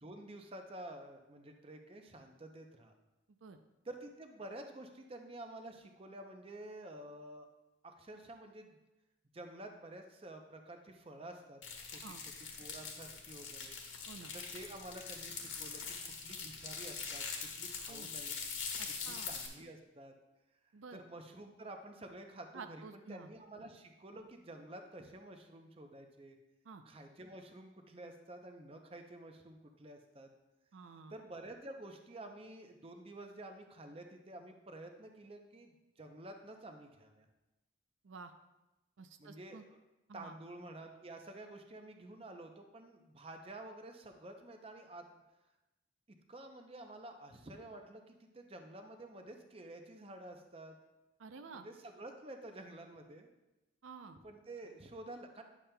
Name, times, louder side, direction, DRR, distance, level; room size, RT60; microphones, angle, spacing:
voice 1, 0.0-2.9 3.8-7.5 7.8-8.8 9.3-11.6 11.9-12.0 12.4-13.8 14.3-18.3 19.0-20.1 20.9-26.4 26.9-30.3 31.1-37.3 39.2-39.8 40.1-45.2 46.3-50.7 51.5-53.3 54.2-55.4, right 1 dB, 30° right, 4 dB, 0.6 m, -50 dB
sound 1, 11.6-19.5, left 5 dB, 75° left, 1.3 m, -43 dB
voice 2, 18.8-19.3 20.7-21.0 22.5-23.3 26.6-26.8 30.7-31.1 38.0-38.3 39.0-39.6 40.1-40.4 51.2-51.7 53.8-54.2, right 4 dB, 75° right, 8 dB, 0.5 m, -50 dB
10.0 x 7.1 x 2.2 m, 0.99 s
head